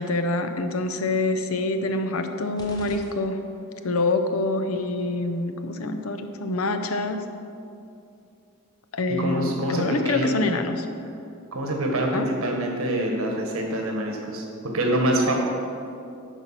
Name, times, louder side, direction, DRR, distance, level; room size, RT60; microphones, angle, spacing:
voice 1, 0.0-3.4 3.8-7.2 8.9-10.9 12.1-12.3, left 2 dB, 75° left, 7 dB, 0.7 m, -26 dB
sound 1, 2.6-3.9, left 1 dB, 20° left, 0.8 m, -45 dB
voice 2, 9.2-10.4 11.5-14.4 14.7-15.4, right 1 dB, 70° right, 1 dB, 1.4 m, -25 dB
10.5 x 4.6 x 5.7 m, 2.6 s
head